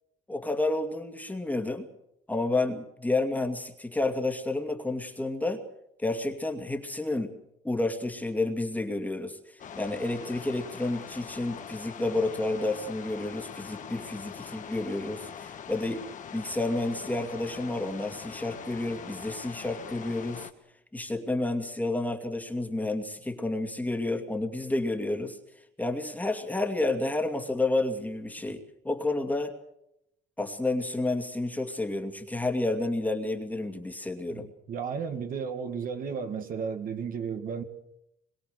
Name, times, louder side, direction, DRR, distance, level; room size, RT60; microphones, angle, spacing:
voice 1, 0.3-1.9 2.3-5.6 6.0-7.3 7.6-20.5 20.9-25.4 25.8-29.6 30.4-34.5, left 2 dB, 10° left, 2.4 m, -30 dB
sound 1, 9.6-20.5, left 7 dB, 50° left, 1.8 m, -43 dB
voice 2, 34.3-37.6, right 6 dB, 55° right, 2.4 m, -34 dB
24.5 x 22.5 x 6.7 m
cardioid pair, 110°, 17 cm